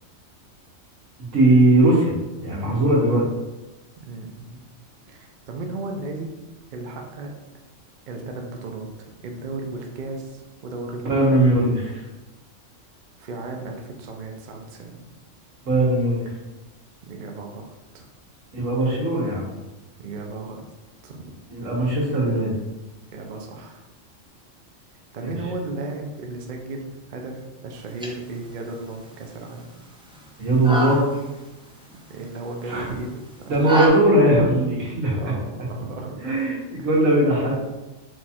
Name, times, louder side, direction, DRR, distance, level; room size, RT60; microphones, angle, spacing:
voice 1, 1.2-2.1 2.4-3.2 11.0-12.0 15.6-16.2 18.5-19.5 21.5-22.5 25.2-25.3 30.4-31.1 32.7-32.9 33.5-35.3 36.2-37.6, right 1 dB, 80° right, -3 dB, 1.6 m, -19 dB
voice 2, 4.0-4.7 5.1-6.3 6.7-7.3 8.1-8.9 9.2-11.4 13.2-15.1 17.0-17.6 17.9-18.1 20.0-20.7 21.0-21.3 23.1-23.8 25.1-29.7 32.1-33.8 35.1-36.4 36.8-36.9, right 2 dB, 50° right, 2 dB, 0.6 m, -35 dB
sound 1, 27.7-33.9, right 1 dB, 10° right, 0.3 m, -32 dB
4.6 x 2.4 x 4.2 m, 1.1 s
omnidirectional pair, 1.3 m